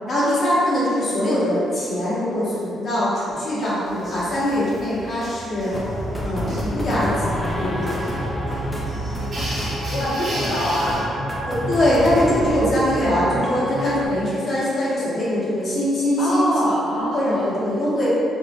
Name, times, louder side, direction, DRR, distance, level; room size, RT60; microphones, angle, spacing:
voice 1, 0.1-5.7 6.2-8.0 11.5-16.4 16.9-18.1, left 1 dB, 45° left, -9 dB, 1.1 m, -22 dB
sound 1, 3.8-11.0, right 1 dB, 40° right, 0.8 m, -35 dB
sound 2, 5.7-14.1, equal, 15° left, 0.5 m, -28 dB
voice 2, 9.9-11.0 16.2-17.4, equal, 90° left, -9 dB, 0.8 m, -24 dB
4.1 x 2.0 x 2.8 m, 2.8 s
cardioid pair, 90°, 0 cm